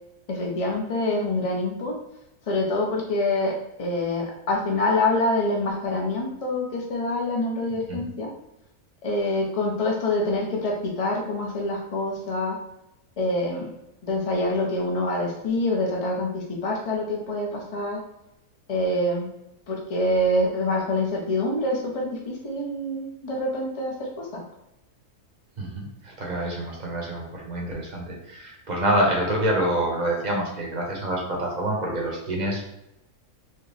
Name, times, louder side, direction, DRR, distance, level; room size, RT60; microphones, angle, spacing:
voice 1, 0.3-2.0 2.5-8.3 9.0-12.6 13.2-13.7 14.0-18.0 18.7-19.3 19.7-24.4, left 1 dB, 30° left, 0 dB, 0.6 m, -26 dB
voice 2, 25.6-32.7, right 1 dB, 35° right, -2 dB, 0.9 m, -27 dB
4.6 x 2.4 x 3.3 m, 0.86 s
omnidirectional pair, 1.7 m